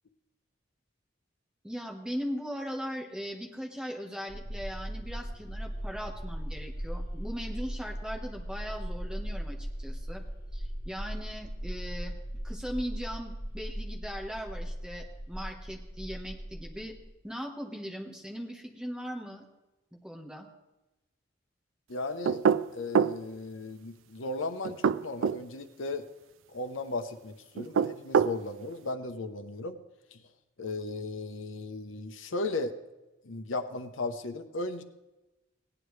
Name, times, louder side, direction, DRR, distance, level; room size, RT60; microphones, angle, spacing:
voice 1, 1.6-10.2 10.5-12.2 12.4-16.9 17.2-19.4 19.9-20.5, equal, 5° right, 0 dB, 1.2 m, -39 dB
sound 1, 4.3-17.1, equal, 45° left, 3.5 m, -38 dB
voice 2, 21.9-22.4 22.7-26.0 26.5-29.8 30.1-30.2 30.6-32.7 33.2-34.8, left 2 dB, 85° left, 8 dB, 0.8 m, -36 dB
sound 2, 22.2-23.2 24.6-25.4 27.6-28.4, right 7 dB, 80° right, 0.3 m, -25 dB
17.0 x 10.0 x 3.2 m, 1.0 s
head